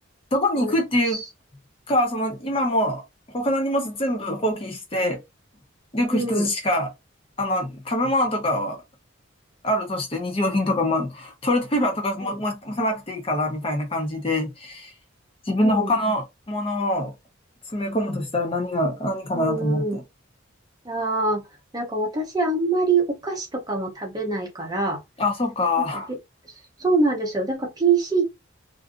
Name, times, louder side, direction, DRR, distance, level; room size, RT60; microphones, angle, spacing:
voice 1, 0.3-1.2 1.9-3.0 3.3-5.2 5.9-6.9 7.4-8.8 9.6-14.9 15.5-17.1 17.7-20.0 25.2-26.1, left 1 dB, 25° left, 0.6 m, -24 dB
voice 2, 6.1-6.5 12.2-12.4 15.6-15.9 19.3-20.0 20.8-21.4 21.7-25.0 25.8-26.2 26.8-28.2, right 3 dB, 20° right, 0.6 m, -24 dB
2.5 x 2.5 x 2.5 m
head